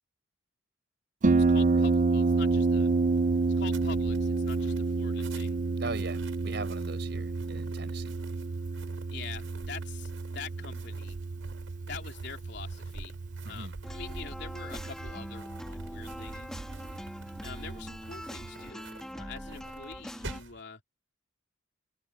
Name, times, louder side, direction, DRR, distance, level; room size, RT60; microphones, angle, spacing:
Harp, 1.2-18.7, right 3 dB, 40° right, 0.5 m, -30 dB
voice 1, 1.3-2.9 3.5-5.6 9.1-11.2 11.9-13.2 13.5-16.6 17.4-20.8, left 5 dB, 60° left, 3.6 m, -45 dB
sound 1, 2.2-20.6, right 3 dB, 80° right, 5.4 m, -51 dB
voice 2, 5.8-8.2 13.4-13.8, right 3 dB, 60° right, 4.8 m, -40 dB
sound 2, 13.8-20.4, equal, 5° left, 2.3 m, -43 dB
open air
head